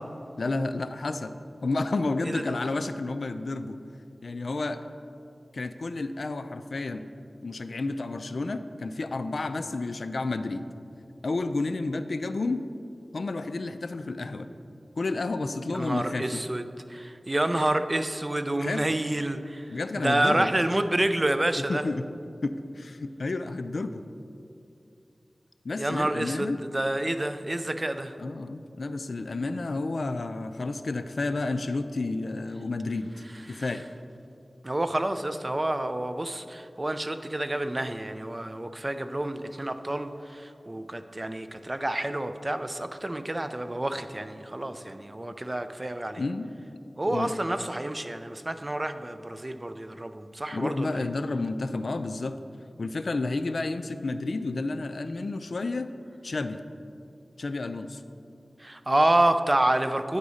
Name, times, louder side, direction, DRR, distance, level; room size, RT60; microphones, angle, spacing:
voice 1, 0.4-1.3 1.6-3.8 4.2-4.8 5.5-7.1 7.4-10.7 11.2-12.6 13.1-14.5 15.0-16.4 18.6-19.0 19.7-20.5 21.6-22.1 22.4-24.0 25.6-26.6 28.2-33.1 33.5-33.8 46.2-46.5 47.1-47.3 50.5-52.4 52.8-55.9 56.2-56.6 57.4-58.0, left 3 dB, 75° left, 10 dB, 0.3 m, -31 dB
voice 2, 15.7-16.6 16.9-19.6 20.0-21.8 25.8-28.1 33.5-33.6 34.6-46.2 47.0-51.1 58.6-60.2, right 1 dB, 30° right, 9 dB, 0.4 m, -28 dB
9.6 x 4.0 x 4.9 m, 2.5 s
wide cardioid pair, 60°, 0 cm